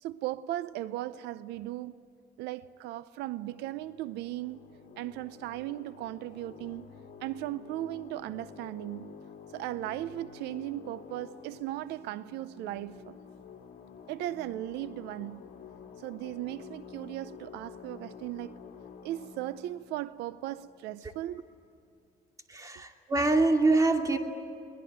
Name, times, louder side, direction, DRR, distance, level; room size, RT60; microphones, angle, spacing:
voice 1, 0.0-2.1 2.4-4.6 5.0-6.9 7.2-9.2 9.5-13.2 14.1-15.5 16.0-18.6 19.0-21.5, right 15 dB, 90° right, 0.6 m, -37 dB
sound 1, 3.3-21.4, left 6 dB, 60° left, 2.4 m, -50 dB
voice 2, 22.5-24.2, right 2 dB, 20° right, 2.6 m, -25 dB
23.5 x 20.0 x 9.4 m
cardioid pair, 110°, 17 cm